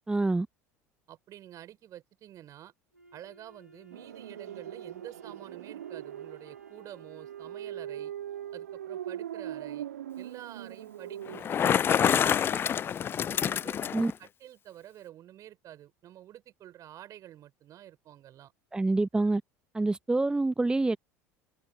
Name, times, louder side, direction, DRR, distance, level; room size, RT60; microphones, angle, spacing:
voice 1, 0.1-0.5 13.9-14.1 18.7-19.4 19.7-21.0, right 2 dB, 10° right, 0.8 m, -26 dB
voice 2, 1.1-2.7 3.1-8.1 8.5-9.9 10.2-18.5 19.1-19.3, right 12 dB, 40° right, 5.7 m, -49 dB
Wind instrument woodwind instrument, 2.9-8.1, right 2 dB, 85° right, 3.3 m, -57 dB
sound 1, 3.9-11.4, right 11 dB, 70° right, 1.8 m, -41 dB
Bicycle, 11.3-14.1, left 8 dB, 25° left, 0.3 m, -27 dB
figure-of-eight pair, 70°, 9 cm